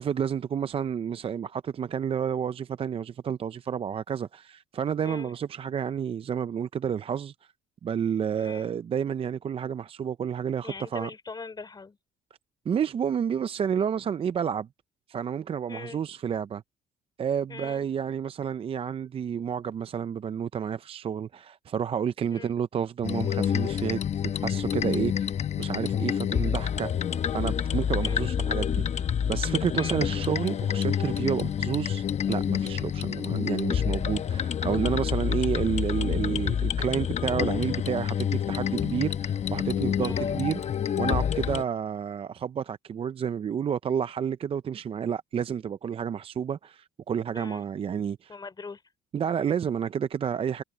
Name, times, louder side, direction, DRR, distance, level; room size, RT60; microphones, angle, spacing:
voice 1, 0.0-7.5 7.8-11.1 12.7-14.7 15.1-16.6 17.2-24.0 24.4-26.9 27.3-48.3 49.1-50.6, right 8 dB, 35° right, 0.5 m, -30 dB
voice 2, 10.6-12.0 15.7-16.0 17.5-17.9 22.3-22.5 28.0-28.3 29.8-30.0 40.0-40.3 47.3-47.6 48.3-48.8, left 4 dB, 25° left, 3.9 m, -41 dB
sound 1, 23.0-41.6, left 8 dB, 40° left, 0.9 m, -28 dB
cardioid pair, 110°, 17 cm